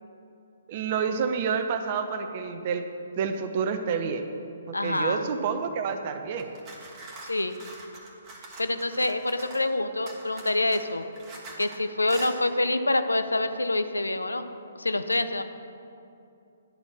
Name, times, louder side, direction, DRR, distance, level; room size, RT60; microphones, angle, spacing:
voice 1, 0.7-2.8 3.2-4.2 4.7-6.5, right 6 dB, 40° right, 7 dB, 0.6 m, -28 dB
voice 2, 4.7-5.3 7.3-7.6 8.6-11.0 11.6-14.4 14.8-15.4, left 2 dB, 85° left, 10 dB, 0.4 m, -26 dB
sound 1, 6.4-9.7 10.1-11.8 12.1-12.4, right 2 dB, 25° right, 1.4 m, -44 dB
10.5 x 4.3 x 5.9 m, 2.7 s
figure-of-eight pair, 130°, 0 cm